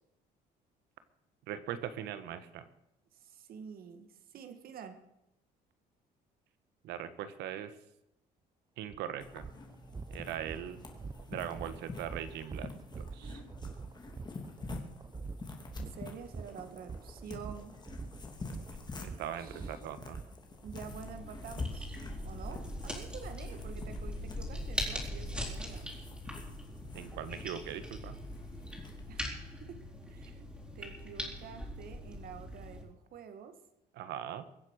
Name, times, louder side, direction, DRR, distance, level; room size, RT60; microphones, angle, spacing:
voice 1, 1.5-2.7 6.8-7.8 8.8-9.4 10.1-10.8 11.3-12.7 13.0-13.4 19.0-20.2 26.9-28.2 33.9-34.5, right 10 dB, 85° right, 12 dB, 1.5 m, -40 dB
voice 2, 3.1-5.0 13.2-13.5 15.0-15.1 15.8-17.8 19.4-19.7 20.6-21.9 22.2-25.9 29.1-29.2 29.6-30.5 30.8-33.6, right 7 dB, 60° right, 9 dB, 2.0 m, -48 dB
sound 1, 8.9-9.0 9.4-20.8, right 4 dB, 20° right, 0.8 m, -46 dB
sound 2, 9.2-29.1, left 3 dB, 25° left, 2.7 m, -47 dB
sound 3, 20.7-32.8, equal, 5° right, 4.5 m, -41 dB
23.0 x 7.9 x 6.5 m, 0.86 s
cardioid pair, 110°, 17 cm